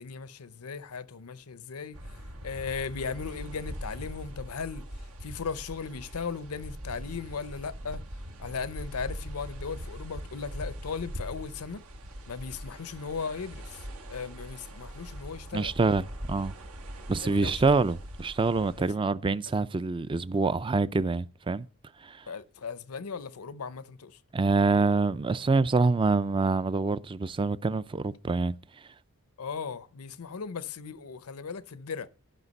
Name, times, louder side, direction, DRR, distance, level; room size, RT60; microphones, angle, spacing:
voice 1, 0.0-2.0 2.4-8.0 8.4-11.8 12.3-15.7 17.2-17.6 18.8-18.9 22.3-24.2 29.4-32.1, left 5 dB, 85° left, 0.7 m, -37 dB
sound 1, 1.9-18.9, equal, 75° right, 1.2 m, -42 dB
voice 2, 15.5-16.5 17.1-21.7 22.0-22.3 24.3-28.5, right 3 dB, 25° right, 0.4 m, -26 dB
12.5 x 5.8 x 5.3 m
head